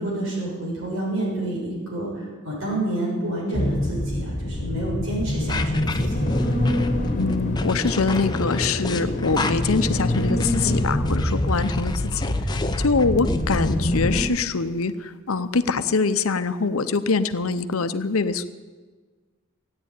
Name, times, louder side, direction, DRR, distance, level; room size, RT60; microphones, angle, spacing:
voice 1, 0.0-6.4, right 1 dB, 75° right, -4 dB, 6.8 m, -29 dB
sound 1, 3.5-14.2, left 1 dB, 35° left, 1.5 m, -25 dB
sound 2, 5.5-13.7, left 3 dB, 20° left, 0.7 m, -33 dB
voice 2, 7.2-12.6 12.8-18.5, left 4 dB, 85° left, 11 dB, 0.8 m, -24 dB
16.0 x 9.7 x 9.2 m, 1.4 s
head